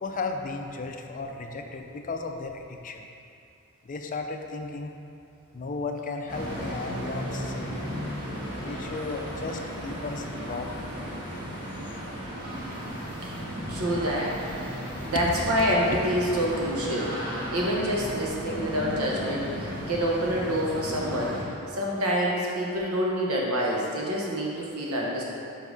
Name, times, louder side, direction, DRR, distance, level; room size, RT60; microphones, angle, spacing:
voice 1, 0.0-3.1 3.8-4.9 5.5-7.9 8.6-10.9 11.3-11.4 15.1-15.3, left 3 dB, 40° left, 4 dB, 0.5 m, -35 dB
sound 1, 6.3-21.4, equal, 50° right, 1.6 m, -35 dB
voice 2, 13.7-14.3 15.0-21.3 21.7-25.2, equal, 85° right, -3 dB, 1.2 m, -27 dB
5.2 x 4.8 x 5.3 m, 2.5 s
head